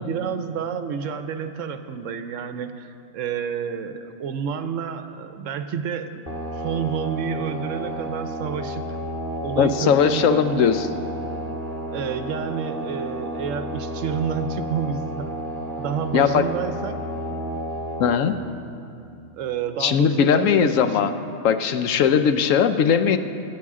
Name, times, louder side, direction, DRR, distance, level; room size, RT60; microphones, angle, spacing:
voice 1, 0.0-6.3 6.5-9.0 9.4-10.7 11.9-15.4 15.8-17.0 19.3-21.2, right 7 dB, 70° right, 9 dB, 1.0 m, -29 dB
sound 1, 6.3-18.1, right 1 dB, 15° right, 1.5 m, -32 dB
voice 2, 9.6-10.9 16.1-16.4 18.0-18.4 19.8-21.1 21.4-23.2, left 7 dB, 75° left, 10 dB, 1.0 m, -19 dB
23.0 x 8.5 x 3.7 m, 2.6 s
omnidirectional pair, 1.4 m